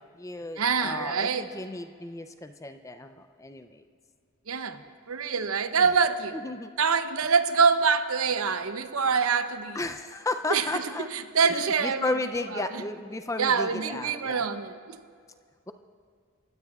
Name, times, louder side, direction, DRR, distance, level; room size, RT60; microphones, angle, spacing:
voice 1, 0.0-3.8 6.3-6.7 9.7-11.1 11.4-14.4, left 2 dB, 15° left, 8 dB, 0.4 m, -34 dB
voice 2, 0.6-1.5 4.5-4.8 5.1-6.4 6.8-9.8 10.5-10.8 11.1-12.1 13.4-15.0, right 5 dB, 75° right, 10 dB, 0.7 m, -25 dB
29.5 x 16.5 x 2.4 m, 2.1 s
head